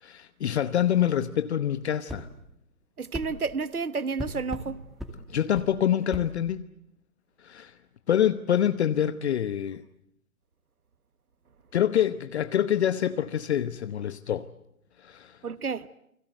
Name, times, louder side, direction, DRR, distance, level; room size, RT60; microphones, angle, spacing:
voice 1, 0.0-2.3 5.3-6.6 7.4-7.7 8.1-9.8 11.7-14.5 15.0-15.4, left 10 dB, 50° left, 1.0 m, -26 dB
sound 1, 2.1-2.3 3.1-3.3 4.2-4.7 5.0-5.2 5.6-5.7 6.1-6.3, equal, ahead, 2.3 m, -36 dB
voice 2, 3.0-4.8 15.4-15.9, right 4 dB, 85° right, 1.1 m, -31 dB
29.0 x 22.0 x 8.0 m
figure-of-eight pair, 125°, 43 cm